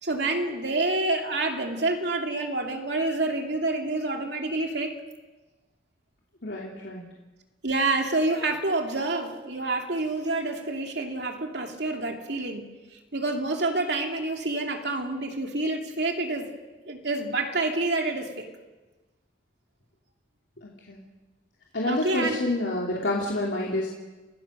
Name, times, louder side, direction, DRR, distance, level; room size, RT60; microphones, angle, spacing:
voice 1, 0.0-4.9 7.6-12.7 13.1-16.5 16.9-18.5 21.9-22.4, right 2 dB, 70° right, 3 dB, 2.7 m, -28 dB
voice 2, 6.4-7.0 20.6-21.0 21.7-23.9, left 1 dB, 80° left, -3 dB, 3.0 m, -28 dB
29.5 x 16.5 x 6.6 m, 1.2 s
head